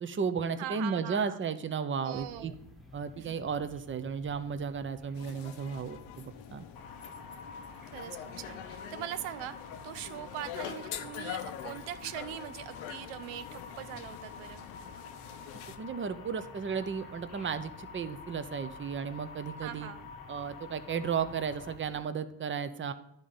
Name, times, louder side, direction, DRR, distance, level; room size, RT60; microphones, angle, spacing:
voice 1, 0.0-2.5 2.9-6.6 15.8-19.9 20.3-22.9, right 6 dB, 25° right, 11 dB, 0.7 m, -34 dB
voice 2, 0.5-1.4 2.0-2.5 3.2-3.4 7.9-14.7 19.6-20.1, right 12 dB, 80° right, 13 dB, 0.5 m, -42 dB
sound 1, 2.1-22.0, left 2 dB, ahead, 1.2 m, -55 dB
sound 2, 5.1-15.8, left 10 dB, 85° left, 0.7 m, -44 dB
sound 3, 6.8-21.8, left 5 dB, 50° left, 0.9 m, -49 dB
10.5 x 3.8 x 5.5 m, 0.79 s
supercardioid pair, 70°, 47 cm